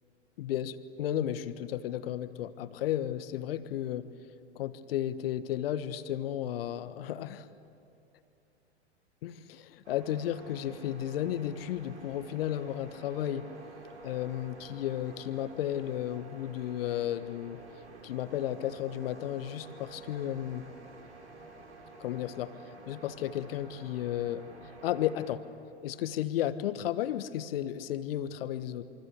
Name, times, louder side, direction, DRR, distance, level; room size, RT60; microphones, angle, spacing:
voice 1, 0.4-4.1 4.5-7.5 9.2-13.5 14.0-17.6 18.0-20.7 22.0-22.5 22.9-24.4 24.8-25.4 25.8-28.8, left 11 dB, 55° left, 12 dB, 1.4 m, -33 dB
sound 1, 9.8-25.3, right 3 dB, 80° right, 4.4 m, -50 dB
27.5 x 24.5 x 8.2 m, 2.8 s
figure-of-eight pair, 105°, 34 cm